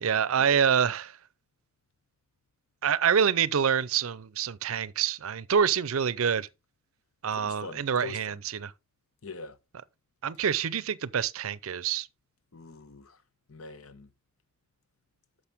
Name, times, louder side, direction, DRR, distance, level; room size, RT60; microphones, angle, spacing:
voice 1, 0.0-1.2 2.8-6.5 7.2-8.7 10.2-12.1, right 7 dB, 70° right, 0.5 m, -26 dB
voice 2, 7.3-8.4 9.2-9.6 12.5-13.2 13.5-14.1, left 3 dB, 70° left, 0.9 m, -43 dB
10.0 x 6.5 x 3.5 m
head